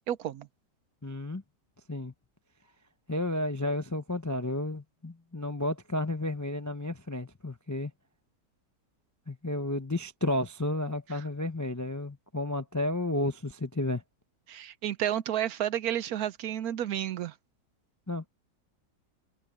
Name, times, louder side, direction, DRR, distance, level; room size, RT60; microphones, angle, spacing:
voice 1, 0.1-0.5 11.1-11.2 14.5-17.3, right 11 dB, 65° right, 1.1 m, -31 dB
voice 2, 1.0-1.4 1.9-2.1 3.1-7.9 9.3-14.0 18.1-18.3, left 1 dB, 25° left, 0.3 m, -32 dB
omnidirectional pair, 1.8 m